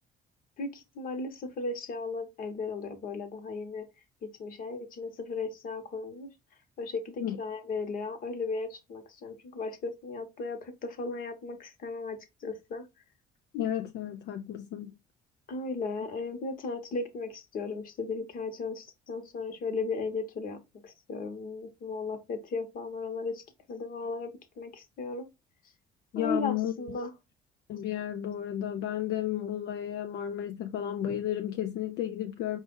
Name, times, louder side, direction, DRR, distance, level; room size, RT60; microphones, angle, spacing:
voice 1, 0.6-3.8 4.2-6.3 6.8-12.8 15.5-23.4 23.7-24.3 24.6-25.3 26.1-27.1, left 3 dB, 55° left, 1.2 m, -36 dB
voice 2, 13.5-14.9 26.1-26.7 27.7-32.6, left 11 dB, 75° left, 0.5 m, -33 dB
4.8 x 2.5 x 3.8 m
cardioid pair, 110°, 17 cm